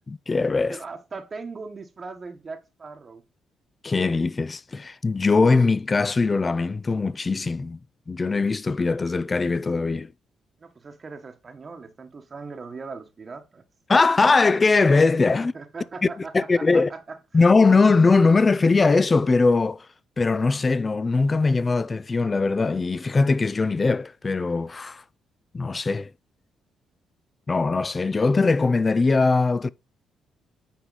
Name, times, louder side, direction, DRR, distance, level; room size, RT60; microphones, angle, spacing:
voice 1, 0.1-0.8 3.8-7.8 8.1-10.1 13.9-15.5 16.3-16.9 17.3-19.9 20.2-25.0 25.5-26.1 27.5-29.7, left 3 dB, 30° left, 0.5 m, -21 dB
voice 2, 0.7-3.2 10.6-13.6 15.4-17.2, right 4 dB, 35° right, 1.2 m, -39 dB
9.2 x 4.7 x 4.0 m
cardioid pair, 90°, 0 cm